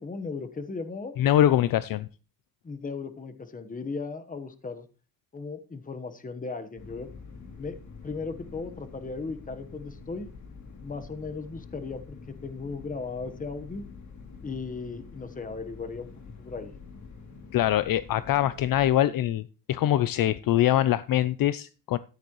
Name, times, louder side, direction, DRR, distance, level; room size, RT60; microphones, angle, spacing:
voice 1, 0.0-1.2 2.6-4.9 5.3-7.1 7.6-10.3 10.8-12.2 12.4-13.8 14.4-16.1 16.4-16.7, left 4 dB, 20° left, 9 dB, 1.1 m, -36 dB
voice 2, 1.2-2.1 17.5-19.4 19.7-22.0, left 12 dB, 70° left, 15 dB, 0.5 m, -23 dB
sound 1, 6.8-18.9, left 4 dB, 50° left, 2.7 m, -46 dB
13.5 x 9.4 x 3.1 m, 0.34 s
cardioid pair, 140°, 36 cm